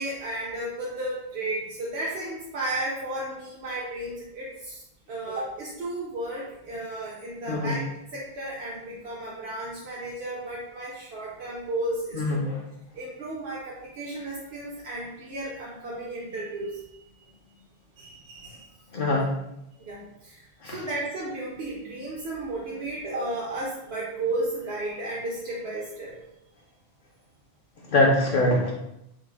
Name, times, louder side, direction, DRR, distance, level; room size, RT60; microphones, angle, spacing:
voice 1, 0.0-4.8 5.1-7.8 8.1-12.5 12.9-17.1 18.0-18.7 19.7-26.1, right 1 dB, 85° right, -6 dB, 1.0 m, -33 dB
voice 2, 7.5-7.8 12.2-12.6 18.9-19.3 20.6-20.8 27.8-28.7, left 1 dB, 55° left, -2 dB, 0.7 m, -23 dB
4.6 x 2.0 x 4.5 m, 0.85 s
omnidirectional pair, 1.0 m